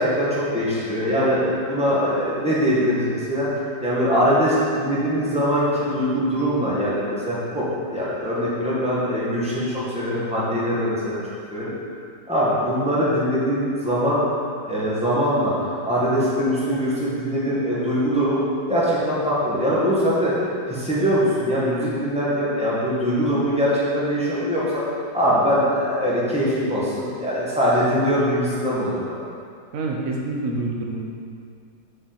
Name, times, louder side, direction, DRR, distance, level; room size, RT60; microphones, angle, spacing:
voice 1, 0.0-3.5 3.8-7.6 7.9-11.2 11.5-11.7 12.3-14.2 14.7-15.5 15.8-18.4 18.7-20.3 20.7-24.8 25.1-29.0, equal, 5° right, -9 dB, 1.4 m, -22 dB
voice 2, 29.7-31.1, right 2 dB, 55° right, -1 dB, 1.1 m, -27 dB
6.7 x 5.7 x 4.2 m, 2.3 s
omnidirectional pair, 2.2 m